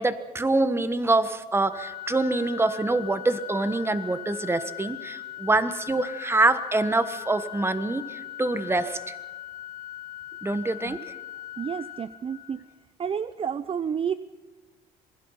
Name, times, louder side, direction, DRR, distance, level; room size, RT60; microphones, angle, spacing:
voice 1, 0.0-9.1 10.4-11.0, right 2 dB, 15° right, 11 dB, 1.4 m, -25 dB
Organ, 1.7-12.7, left 13 dB, 50° left, 4.0 m, -40 dB
voice 2, 11.6-12.6 13.0-14.1, right 7 dB, 35° right, 14 dB, 0.7 m, -30 dB
26.5 x 21.0 x 5.8 m, 1.3 s
cardioid pair, 110°, 17 cm